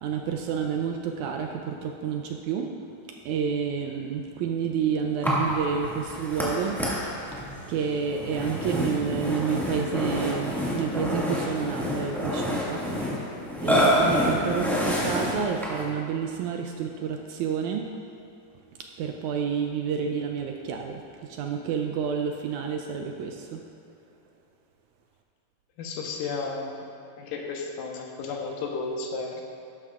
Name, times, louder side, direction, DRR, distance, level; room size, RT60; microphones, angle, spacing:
voice 1, 0.0-2.7 3.3-12.8 13.6-17.9 19.0-21.0 21.3-23.6, right 7 dB, 80° right, 3 dB, 1.8 m, -29 dB
Burping eructation, 5.2-15.9, equal, ahead, 0.4 m, -27 dB
voice 2, 25.8-26.8 27.2-29.4, left 4 dB, 90° left, 1 dB, 2.6 m, -33 dB
12.5 x 11.0 x 2.4 m, 2.7 s
omnidirectional pair, 3.8 m